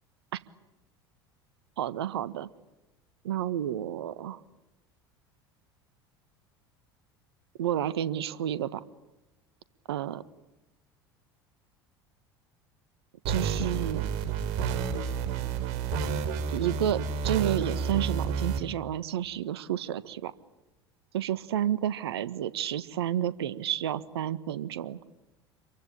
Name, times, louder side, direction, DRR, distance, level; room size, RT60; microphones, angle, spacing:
voice 1, 1.8-2.5 3.2-4.4 7.6-8.8 9.9-10.2 13.2-14.1 16.5-20.3 21.1-25.0, right 11 dB, 75° right, 15 dB, 1.5 m, -30 dB
sound 1, 13.3-18.6, right 6 dB, 60° right, 4.1 m, -30 dB
28.0 x 23.5 x 8.8 m, 1.0 s
figure-of-eight pair, 75°, 14 cm